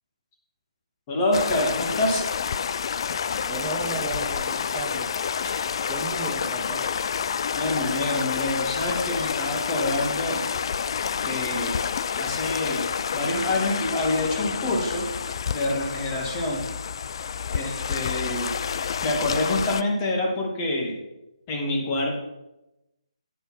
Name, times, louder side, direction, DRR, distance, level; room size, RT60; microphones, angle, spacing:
voice 1, 1.1-2.3 5.4-5.5 7.6-10.5 11.2-15.1 15.5-16.7 17.5-18.6 19.0-21.0 21.5-22.2, left 1 dB, 25° left, 1 dB, 2.2 m, -27 dB
sound 1, 1.3-19.8, left 7 dB, 45° left, 0.4 m, -29 dB
voice 2, 3.5-5.1 5.9-6.9, right 4 dB, 15° right, 2 dB, 0.8 m, -35 dB
10.0 x 6.8 x 6.0 m, 0.93 s
figure-of-eight pair, 155°, 4 cm